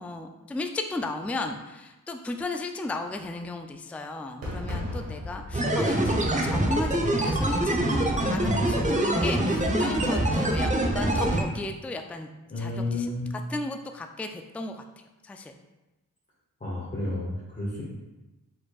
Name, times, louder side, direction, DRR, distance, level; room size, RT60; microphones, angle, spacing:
voice 1, 0.0-6.1 6.4-7.7 8.2-12.3 12.6-15.5, left 2 dB, 5° left, 5 dB, 0.3 m, -35 dB
Fireworks, 4.4-9.5, left 1 dB, 85° right, 1.5 m, -39 dB
sound 1, 5.5-11.4, right 1 dB, 20° right, 0.8 m, -24 dB
voice 2, 12.5-13.3 16.6-17.8, left 2 dB, 25° left, -7 dB, 1.4 m, -31 dB
4.5 x 4.3 x 2.4 m, 1.0 s
cardioid pair, 55°, 33 cm